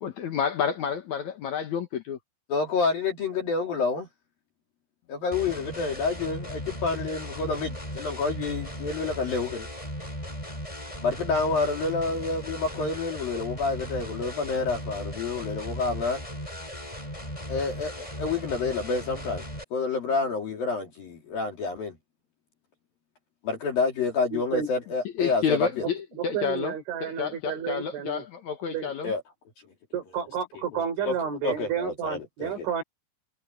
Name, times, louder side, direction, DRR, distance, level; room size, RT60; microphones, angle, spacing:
voice 1, 0.0-2.2 25.1-26.7 27.0-29.1, left 7 dB, 75° left, 1.7 m, -29 dB
voice 2, 2.5-4.1 5.1-9.7 11.0-16.2 17.5-19.4 19.7-22.0 23.4-25.8 29.0-29.2 30.7-31.1 31.4-32.7, left 4 dB, 55° left, 4.7 m, -28 dB
sound 1, 5.3-19.6, equal, 5° left, 6.9 m, -37 dB
voice 3, 24.3-24.7 26.2-28.2 28.7-28.9 29.9-32.8, right 8 dB, 90° right, 7.8 m, -31 dB
omnidirectional pair, 5.3 m